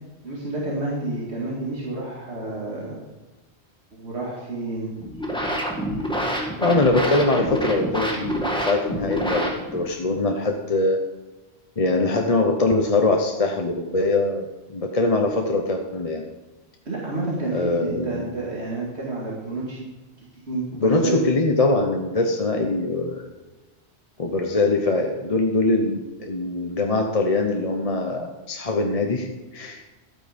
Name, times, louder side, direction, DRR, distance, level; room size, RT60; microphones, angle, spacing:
voice 1, 0.2-3.0 3.9-4.9 16.9-19.9 20.5-21.3, right 2 dB, 80° right, -5 dB, 2.5 m, -29 dB
sound 1, 5.0-10.0, equal, 5° left, 1.9 m, -27 dB
voice 2, 6.6-11.0 11.8-16.2 17.5-18.2 20.7-23.3 24.2-29.3 29.5-29.8, left 2 dB, 35° left, 3 dB, 1.0 m, -22 dB
12.5 x 8.9 x 5.2 m, 1.2 s
omnidirectional pair, 1.1 m